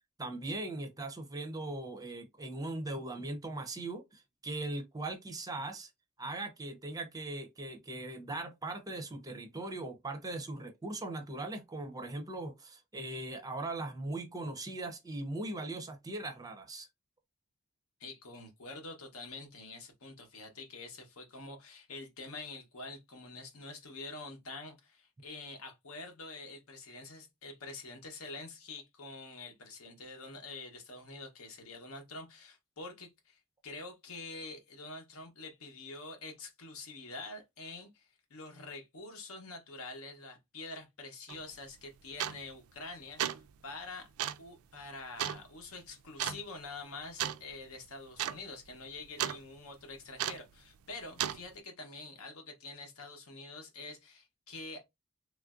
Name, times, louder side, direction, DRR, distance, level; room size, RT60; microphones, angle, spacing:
voice 1, 0.2-5.9 6.2-16.9, right 2 dB, 15° right, 0.5 m, -39 dB
voice 2, 18.0-44.1 44.4-54.8, left 3 dB, 80° left, 0.9 m, -46 dB
sound 1, 41.3-41.4 42.2-42.6 43.0-43.5 44.2-44.5 45.2-45.4 46.2-46.4 47.2-47.4 47.7-47.8 48.1-48.4 48.7-49.4 50.2-50.5 51.2-51.4, right 11 dB, 80° right, 0.3 m, -34 dB
3.2 x 2.5 x 2.4 m
head